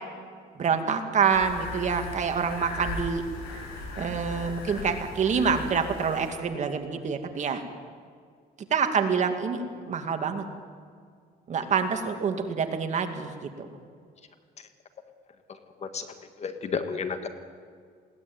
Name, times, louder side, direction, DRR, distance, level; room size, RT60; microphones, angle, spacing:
voice 1, 0.6-3.2 4.0-7.6 8.7-10.4 11.5-13.3 13.6-13.7, right 6 dB, 45° right, 6 dB, 2.2 m, -26 dB
sound 1, 1.3-6.3, left 3 dB, 85° left, 6.3 m, -38 dB
voice 2, 15.5-17.3, left 5 dB, 40° left, 8 dB, 1.8 m, -33 dB
20.5 x 17.5 x 9.3 m, 2.1 s
cardioid pair, 110°, 17 cm